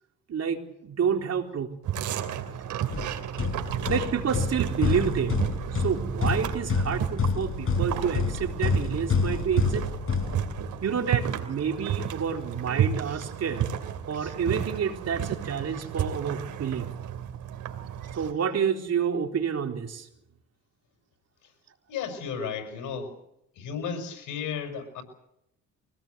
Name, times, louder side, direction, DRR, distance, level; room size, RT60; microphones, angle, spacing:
voice 1, 0.3-1.7 3.9-9.9 10.8-13.7 14.1-16.9 18.1-20.1, right 7 dB, 55° right, 4 dB, 3.9 m, -29 dB
sound 1, 1.8-18.3, right 9 dB, 80° right, 2.9 m, -32 dB
sound 2, 2.9-10.9, left 5 dB, 45° left, 5.2 m, -29 dB
voice 2, 21.9-23.1 23.5-25.0, left 6 dB, 85° left, 6 dB, 6.0 m, -34 dB
24.5 x 18.0 x 8.2 m, 0.80 s
cardioid pair, 90°, 30 cm